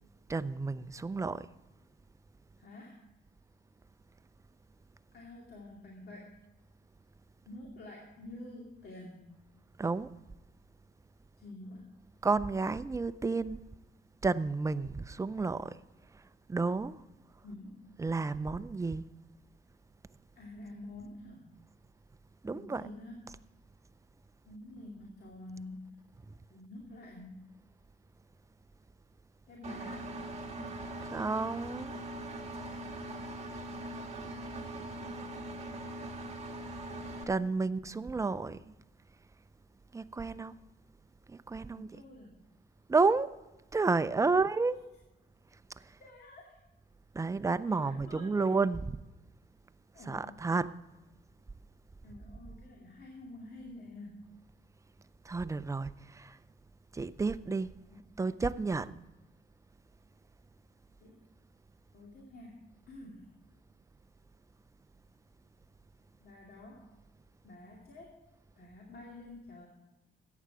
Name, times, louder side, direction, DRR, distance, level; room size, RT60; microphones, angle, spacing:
voice 1, 0.3-1.5 9.8-10.1 12.2-13.6 14.2-15.8 16.1-16.2 16.5-17.0 18.0-19.1 22.4-22.8 31.0-31.9 37.3-38.6 39.9-40.6 41.3-41.9 42.9-43.3 43.7-44.8 45.8-46.0 47.1-48.8 50.1-50.7 55.2-56.4 56.9-57.7 58.2-58.9, right 4 dB, 15° right, 0.5 m, -31 dB
voice 2, 2.6-3.1 5.1-6.4 7.4-9.3 11.4-11.9 17.4-17.9 20.3-21.5 22.4-23.3 24.4-26.0 26.5-27.5 29.5-30.2 41.7-42.4 44.3-44.6 46.0-46.6 47.7-48.6 49.9-50.5 52.0-54.3 57.9-58.9 61.0-61.2 61.9-63.4 66.2-66.9 67.4-68.2 68.6-69.7, left 1 dB, 50° left, 2.5 m, -49 dB
Engine, 29.6-37.2, right 1 dB, 35° right, 2.0 m, -41 dB
14.0 x 9.3 x 4.9 m
cardioid pair, 90°, 20 cm